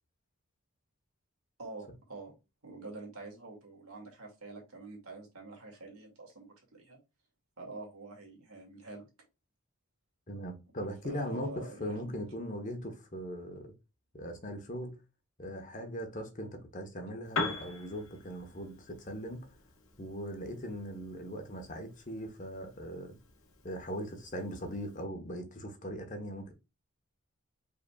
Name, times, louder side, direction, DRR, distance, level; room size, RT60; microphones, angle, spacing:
voice 1, 1.6-2.3 2.6-7.0 7.6-9.1 11.0-12.2, right 3 dB, 80° right, 2.2 m, -47 dB
voice 2, 10.3-13.7 14.1-15.0 15.4-19.5 20.0-23.2 23.6-26.5, equal, 35° left, 1.0 m, -40 dB
Piano, 17.2-25.0, left 3 dB, 65° left, 1.1 m, -43 dB
5.2 x 4.1 x 2.3 m
head